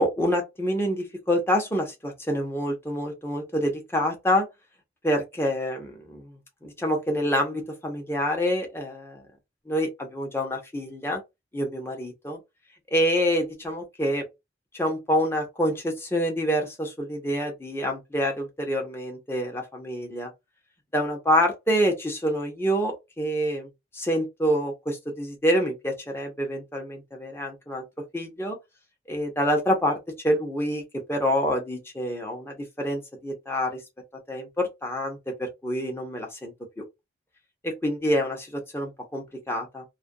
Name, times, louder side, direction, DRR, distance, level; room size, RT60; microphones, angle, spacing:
voice 1, 0.0-4.5 5.0-9.2 9.7-11.2 11.5-12.4 12.9-14.3 14.7-20.3 20.9-23.7 23.9-27.8 28.1-28.6 29.1-30.8 31.1-33.8 34.3-36.8 37.6-39.8, equal, 10° left, 0.7 m, -27 dB
2.4 x 2.1 x 2.6 m
head